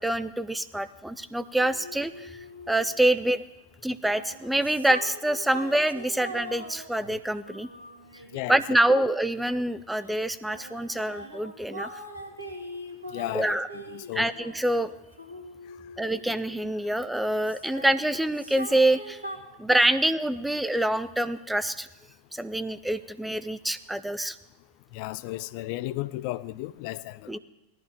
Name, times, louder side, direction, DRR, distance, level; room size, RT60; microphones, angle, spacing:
voice 1, 0.0-2.4 2.7-3.4 3.8-7.7 8.5-11.9 13.3-13.7 14.1-14.9 16.0-19.2 19.6-21.9 22.3-24.4 27.3-27.4, right 1 dB, 5° right, 0.6 m, -26 dB
sound 1, 1.5-3.2 3.9-9.5 10.1-17.0 17.3-19.4, equal, 85° right, 1.8 m, -42 dB
voice 2, 13.1-13.6 13.9-14.3 24.9-27.4, left 17 dB, 45° left, 0.5 m, -34 dB
18.5 x 13.5 x 3.5 m
figure-of-eight pair, 90°, 0 cm